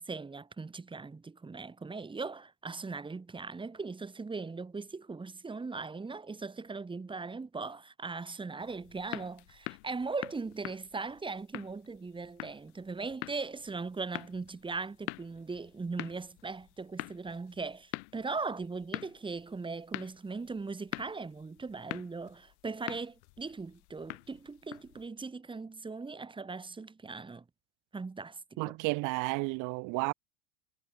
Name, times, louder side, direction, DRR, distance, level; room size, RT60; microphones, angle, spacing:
voice 1, 0.0-27.4 27.9-28.8, right 4 dB, 15° right, 2.9 m, -39 dB
sound 1, 8.6-25.1, left 33 dB, 65° left, 1.9 m, -45 dB
voice 2, 28.6-30.1, right 27 dB, 60° right, 2.1 m, -32 dB
supercardioid pair, 110°, 35 cm